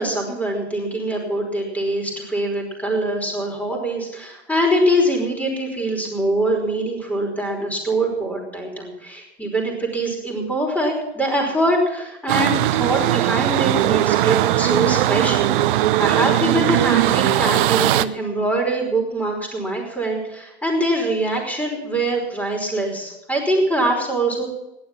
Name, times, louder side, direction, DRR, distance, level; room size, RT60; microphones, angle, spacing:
voice 1, 0.0-24.5, right 1 dB, 5° left, 0 dB, 5.1 m, -23 dB
sound 1, 12.3-18.0, right 14 dB, 50° right, 0.7 m, -19 dB
17.0 x 11.5 x 6.1 m, 0.90 s
figure-of-eight pair, 85°, 33 cm